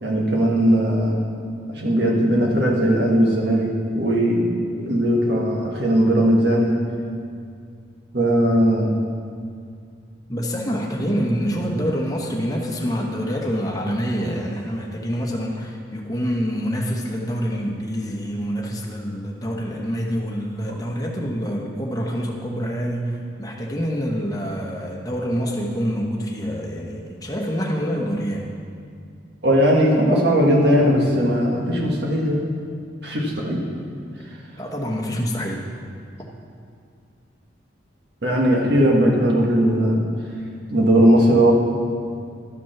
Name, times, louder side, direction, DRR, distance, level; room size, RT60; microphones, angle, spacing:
voice 1, 0.0-1.2 1.7-4.5 4.8-6.8 8.1-8.9 29.4-32.4 33.0-33.6 38.2-40.0 40.7-41.5, equal, 60° right, -2 dB, 1.7 m, -18 dB
voice 2, 10.3-28.4 34.6-35.6, equal, 20° left, -1 dB, 1.1 m, -26 dB
12.0 x 6.0 x 5.9 m, 2.3 s
head